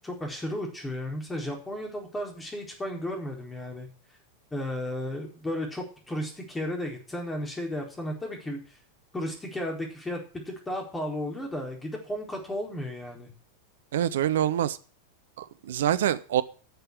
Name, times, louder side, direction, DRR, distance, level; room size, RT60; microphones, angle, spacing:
voice 1, 0.0-3.9 4.5-8.6 9.1-10.2 10.5-13.3, left 1 dB, 10° left, 1 dB, 4.3 m, -34 dB
voice 2, 13.9-14.8 15.4-16.4, right 11 dB, 60° right, 15 dB, 0.8 m, -25 dB
11.5 x 6.8 x 8.7 m, 0.38 s
figure-of-eight pair, 90°, 0 cm